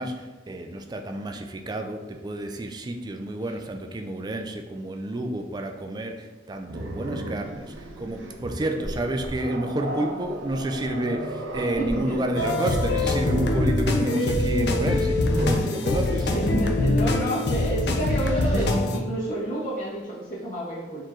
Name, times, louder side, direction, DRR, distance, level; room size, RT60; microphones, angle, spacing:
voice 1, 0.0-16.4, right 1 dB, 20° right, 5 dB, 0.3 m, -30 dB
Growling, 6.7-15.7 17.0-17.2 17.7-18.8, right 2 dB, 85° right, 0.6 m, -34 dB
voice 2, 11.8-12.1 13.3-13.5 15.6-15.7 16.3-21.0, right 1 dB, 40° left, -7 dB, 1.4 m, -29 dB
sound 1, 12.4-19.0, left 2 dB, 60° left, 0.5 m, -24 dB
4.5 x 3.0 x 3.7 m, 1.2 s
head